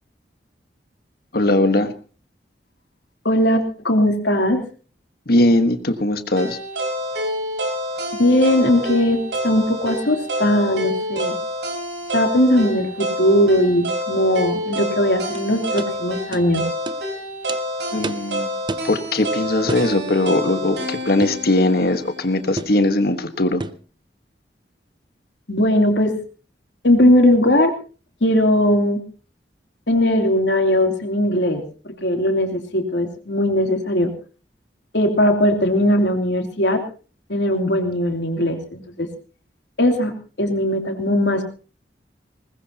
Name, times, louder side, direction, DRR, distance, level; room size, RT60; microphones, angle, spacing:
voice 1, 1.3-1.9 5.3-6.6 17.9-18.5 18.8-23.6, left 1 dB, 60° left, 9 dB, 1.4 m, -19 dB
voice 2, 3.2-4.6 8.2-11.4 12.1-16.6 25.5-26.1 26.8-27.7 28.2-29.0 29.9-34.1 34.9-36.8 37.3-39.1 39.8-41.4, left 1 dB, 85° left, 4 dB, 3.0 m, -19 dB
sound 1, 6.4-22.5, equal, 85° right, 5.9 m, -28 dB
sound 2, 15.3-15.4 15.8-15.9 16.3-16.5 16.9-17.0 17.5-17.6 18.0-18.3 18.7-18.9 19.7-19.9 21.2-21.4 22.6-22.8 23.6-23.8, right 3 dB, 25° right, 0.7 m, -30 dB
21.0 x 19.5 x 2.9 m, 0.36 s
head